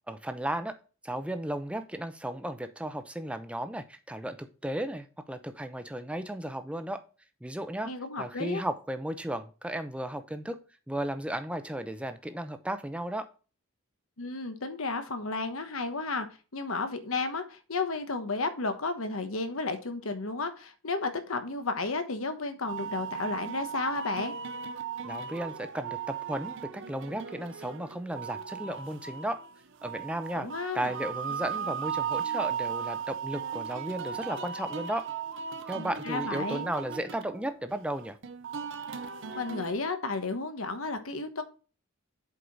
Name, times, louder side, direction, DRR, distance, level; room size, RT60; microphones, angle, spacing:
voice 1, 0.1-0.8 1.0-7.0 7.4-7.9 8.2-10.6 10.9-13.3 25.0-29.4 29.8-30.5 30.7-35.0 35.7-38.2, right 1 dB, 5° right, 9 dB, 0.7 m, -35 dB
voice 2, 7.8-8.6 14.2-16.3 16.5-24.3 30.3-30.9 35.7-36.6 39.4-41.4, left 3 dB, 75° left, 8 dB, 1.2 m, -33 dB
sound 1, 22.7-39.7, right 7 dB, 60° right, 0.7 m, -37 dB
7.9 x 4.8 x 4.0 m, 0.35 s
head